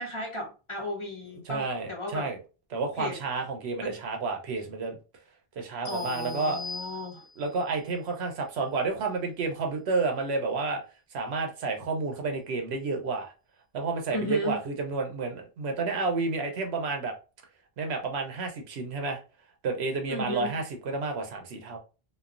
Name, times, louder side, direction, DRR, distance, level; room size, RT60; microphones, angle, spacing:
voice 1, 0.0-2.3 3.0-3.2 3.8-4.0 5.9-7.2 14.1-14.6 20.1-20.6, left 1 dB, 30° left, -2 dB, 0.8 m, -34 dB
voice 2, 1.5-2.4 2.7-5.0 5.5-6.6 7.4-10.8 11.1-13.3 13.7-17.1 17.8-19.2 19.6-21.8, right 3 dB, 85° right, 3 dB, 0.9 m, -30 dB
sound 1, 5.9-7.6, left 3 dB, 65° left, 0.9 m, -41 dB
3.0 x 2.0 x 2.4 m, 0.32 s
omnidirectional pair, 1.1 m